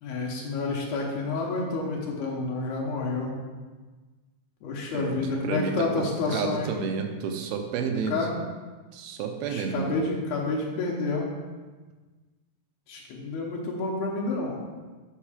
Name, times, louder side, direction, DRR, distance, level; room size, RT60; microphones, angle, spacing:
voice 1, 0.0-3.4 4.6-6.7 8.1-8.4 9.5-11.3 12.9-14.6, left 3 dB, 75° left, -2 dB, 2.8 m, -29 dB
voice 2, 4.9-8.3 8.9-10.0, right 5 dB, 80° right, 5 dB, 2.4 m, -31 dB
8.7 x 4.8 x 4.9 m, 1.3 s
omnidirectional pair, 4.7 m